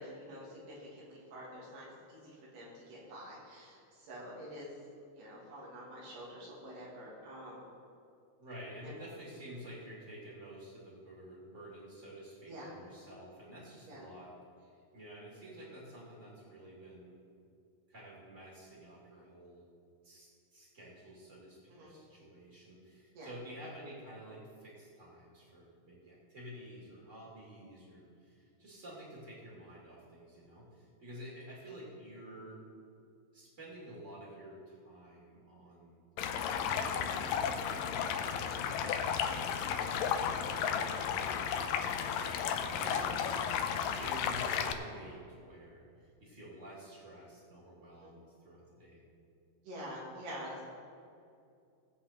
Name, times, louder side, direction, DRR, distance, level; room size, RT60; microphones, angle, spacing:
voice 1, 0.0-4.7 5.1-7.6 8.8-9.0 12.5-12.7 13.9-14.0 21.7-21.9 23.1-23.3 38.8-39.0 42.8-43.1 47.9-48.1 49.6-50.6, equal, 75° right, -6 dB, 4.5 m, -47 dB
voice 2, 8.4-17.1 17.9-19.7 20.0-32.6 33.3-36.0 36.5-43.4 43.7-49.0, right 1 dB, 20° right, -6 dB, 2.4 m, -51 dB
Stream, 36.2-44.7, left 7 dB, 85° left, 2.0 m, -33 dB
19.0 x 7.8 x 4.4 m, 2.5 s
omnidirectional pair, 4.6 m